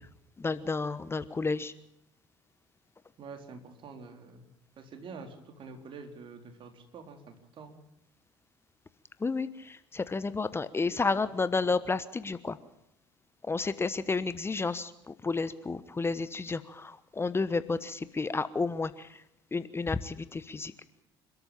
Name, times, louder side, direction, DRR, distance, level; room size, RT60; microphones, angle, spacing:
voice 1, 0.4-1.7 9.2-12.6 13.5-19.2 19.5-20.7, left 4 dB, 20° left, 14 dB, 1.2 m, -31 dB
voice 2, 3.2-4.5 4.8-7.8, right 4 dB, 45° right, 6 dB, 4.2 m, -47 dB
28.0 x 13.0 x 8.9 m, 0.79 s
hypercardioid pair, 60°, 12 cm